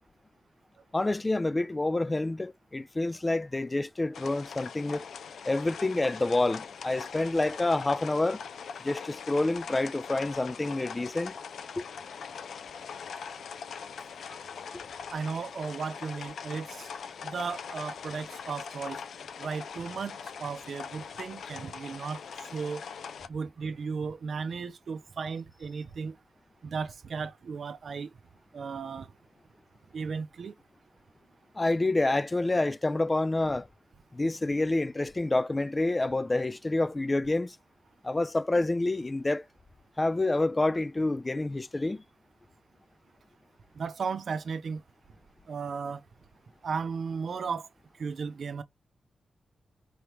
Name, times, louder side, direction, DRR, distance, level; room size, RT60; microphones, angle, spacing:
voice 1, 0.9-5.1 5.5-8.4 8.8-11.3 11.8-11.9 14.7-14.8 31.6-33.7 34.1-37.6 38.0-39.4 40.0-42.0, left 2 dB, 20° left, 0.3 m, -28 dB
sound 1, 4.1-23.3, left 6 dB, 85° left, 0.5 m, -42 dB
voice 2, 15.1-16.9 17.2-19.0 19.4-22.8 23.3-26.2 26.6-28.1 28.5-29.1 29.9-30.5 43.7-44.8 45.5-46.0 46.6-47.7 48.0-48.6, right 5 dB, 60° right, 0.6 m, -35 dB
5.0 x 2.9 x 3.3 m
wide cardioid pair, 125°, 0 cm